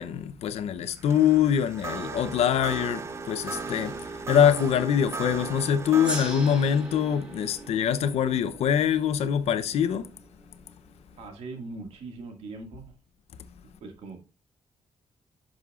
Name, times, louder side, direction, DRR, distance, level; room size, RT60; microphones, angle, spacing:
voice 1, 0.0-10.1, left 8 dB, 90° left, 0.8 m, -24 dB
sound 1, 0.9-10.3, right 4 dB, 25° right, 0.5 m, -38 dB
sound 2, 3.5-5.2, right 3 dB, 45° right, 1.7 m, -51 dB
Gong, 6.0-10.8, equal, 10° right, 2.1 m, -41 dB
voice 2, 11.2-13.0 13.8-14.2, right 3 dB, 75° right, 2.1 m, -40 dB
10.5 x 6.5 x 2.5 m
wide cardioid pair, 180°, 11 cm